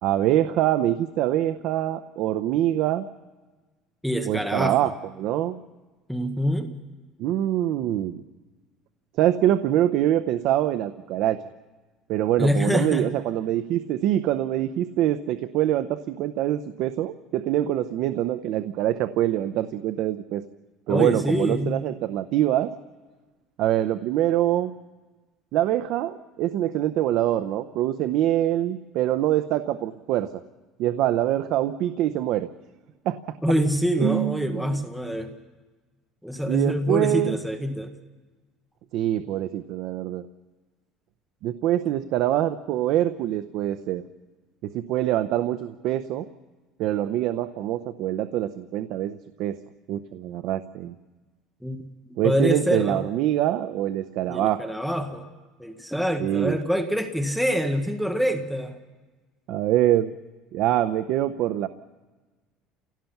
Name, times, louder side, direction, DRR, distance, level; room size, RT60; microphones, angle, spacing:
voice 1, 0.0-3.1 4.3-5.6 7.2-8.2 9.2-11.4 12.1-20.4 20.9-22.7 23.6-24.7 25.5-30.3 30.8-32.5 33.0-33.4 34.0-34.8 36.5-37.3 38.9-40.3 41.4-44.0 44.6-46.3 46.8-49.6 49.9-50.9 52.2-54.6 56.2-56.6 59.5-60.1 60.5-61.7, right 12 dB, 55° right, 11 dB, 0.6 m, -24 dB
voice 2, 4.0-4.9 6.1-6.7 12.4-13.1 20.9-21.8 33.4-35.3 36.2-37.9 51.6-53.1 54.3-55.3 55.6-58.8, equal, ahead, 5 dB, 1.0 m, -25 dB
29.5 x 17.0 x 5.9 m, 1.3 s
cardioid pair, 165°, 0 cm